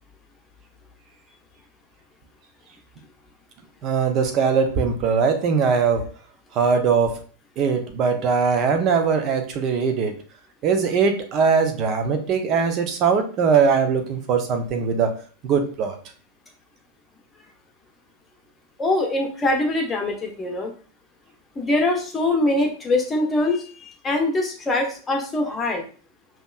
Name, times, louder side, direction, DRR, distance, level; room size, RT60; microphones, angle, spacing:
voice 1, 3.8-6.1 6.5-7.2 7.6-10.1 10.6-15.1 15.4-16.0, right 5 dB, 35° right, 6 dB, 0.7 m, -21 dB
voice 2, 18.8-20.7 21.6-23.6 24.0-25.8, left 2 dB, 15° left, 2 dB, 1.0 m, -23 dB
5.3 x 3.0 x 2.3 m, 0.41 s
figure-of-eight pair, 90°, 0 cm